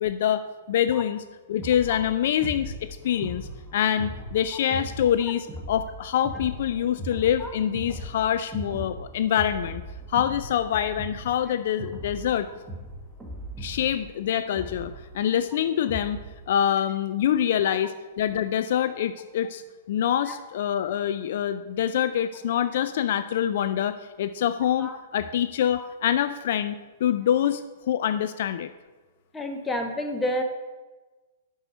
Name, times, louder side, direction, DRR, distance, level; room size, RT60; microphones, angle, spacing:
voice 1, 0.0-2.7 3.0-9.8 10.1-12.5 13.6-16.2 16.5-19.6 19.9-26.7 27.0-28.7, left 10 dB, 60° left, 11 dB, 0.3 m, -25 dB
sound 1, 1.6-16.4, right 1 dB, 10° right, 1.5 m, -39 dB
voice 2, 29.3-30.4, left 1 dB, 10° left, 4 dB, 1.0 m, -29 dB
6.5 x 6.3 x 5.0 m, 1.2 s
hypercardioid pair, 120°, 0 cm